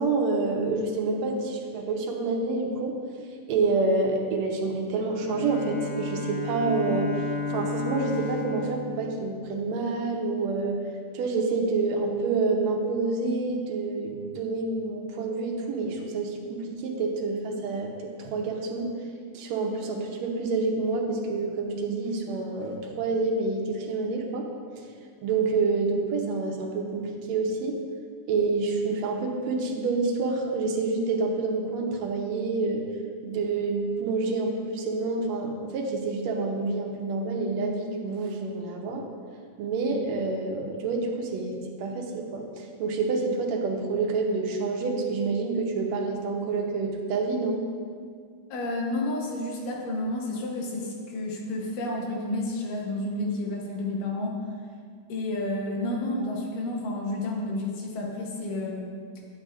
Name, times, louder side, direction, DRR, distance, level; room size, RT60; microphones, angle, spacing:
voice 1, 0.0-3.0 3.5-7.1 7.5-10.8 11.1-18.9 19.3-24.5 24.8-24.9 25.2-27.8 28.3-32.8 33.2-39.0 39.6-47.6, right 3 dB, 70° right, 1 dB, 1.9 m, -28 dB
Bowed string instrument, 5.1-10.0, left 3 dB, 55° left, 0.8 m, -33 dB
voice 2, 48.5-54.4 55.1-58.9, left 2 dB, 90° left, -1 dB, 2.7 m, -30 dB
10.5 x 8.9 x 2.5 m, 2.1 s
omnidirectional pair, 3.7 m